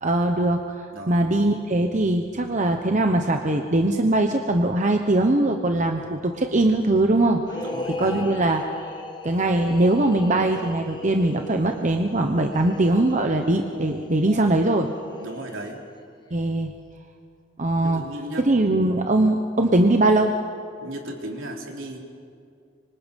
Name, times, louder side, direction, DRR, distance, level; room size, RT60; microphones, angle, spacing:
voice 1, 0.0-7.4 8.0-8.7 9.2-14.9 16.3-16.7 17.6-18.0 18.5-20.4, right 2 dB, 35° right, 4 dB, 1.1 m, -21 dB
voice 2, 0.9-1.3 7.6-8.3 15.2-15.8 17.8-18.5 20.8-22.0, right 1 dB, 70° right, 0 dB, 3.6 m, -36 dB
sound 1, 7.4-16.0, left 2 dB, 20° left, 1.5 m, -38 dB
26.0 x 25.0 x 5.4 m, 2.3 s
head